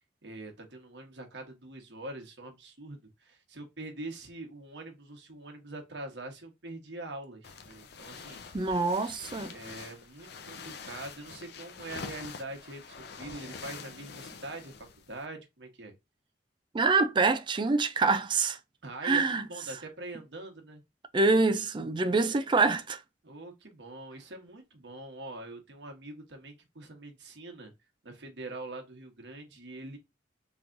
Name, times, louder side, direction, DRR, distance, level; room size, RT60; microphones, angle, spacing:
voice 1, 0.2-8.4 9.5-15.9 18.8-20.8 23.2-27.7 28.0-30.0, right 2 dB, 80° right, 1.2 m, -44 dB
sound 1, 7.4-15.2, left 5 dB, 65° left, 0.6 m, -45 dB
voice 2, 8.5-9.5 16.7-18.6 19.0-19.5 21.1-23.0, right 3 dB, 25° right, 0.4 m, -25 dB
3.6 x 3.1 x 2.6 m
head